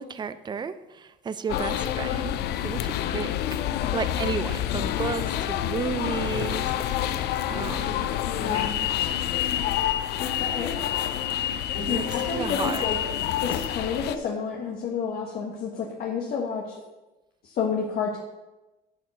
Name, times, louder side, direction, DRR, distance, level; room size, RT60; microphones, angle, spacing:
voice 1, 0.0-3.3 3.9-8.1 8.4-8.9 11.7-12.9, right 6 dB, 25° right, 13 dB, 0.5 m, -33 dB
sound 1, 1.5-14.2, left 11 dB, 80° left, 0.6 m, -28 dB
voice 2, 8.2-8.8 10.2-10.8 11.9-13.0 13.4-16.8 17.4-18.2, left 6 dB, 60° left, -1 dB, 1.4 m, -30 dB
11.0 x 4.5 x 7.0 m, 1.1 s
cardioid pair, 110°, 17 cm